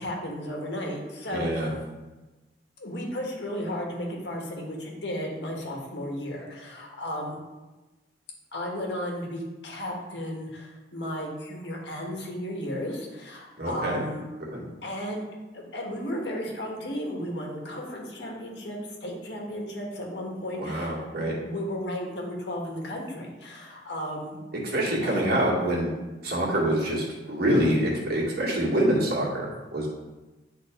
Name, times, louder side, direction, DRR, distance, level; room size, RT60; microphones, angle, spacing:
voice 1, 0.0-1.5 2.8-7.4 8.5-14.3 14.8-15.3 15.5-24.4 25.0-25.3, equal, 65° left, -1 dB, 1.6 m, -34 dB
voice 2, 1.3-1.7 13.6-14.0 14.5-14.6 20.6-21.3 24.6-25.9 26.2-29.9, right 1 dB, 60° right, -4 dB, 2.1 m, -26 dB
10.5 x 4.0 x 3.8 m, 1.1 s
head